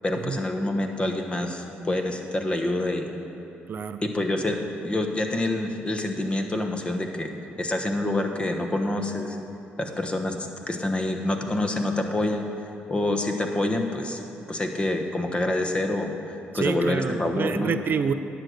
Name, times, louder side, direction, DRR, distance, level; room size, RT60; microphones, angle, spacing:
voice 1, 0.0-3.1 4.0-4.6 4.8-7.3 7.6-9.4 9.8-12.4 12.9-14.2 14.5-16.1 16.5-17.7, left 1 dB, 25° left, 4 dB, 1.1 m, -27 dB
voice 2, 3.7-4.0 16.5-18.1, right 6 dB, 50° right, 10 dB, 0.4 m, -27 dB
10.0 x 6.6 x 6.4 m, 2.8 s
cardioid pair, 75°, 4 cm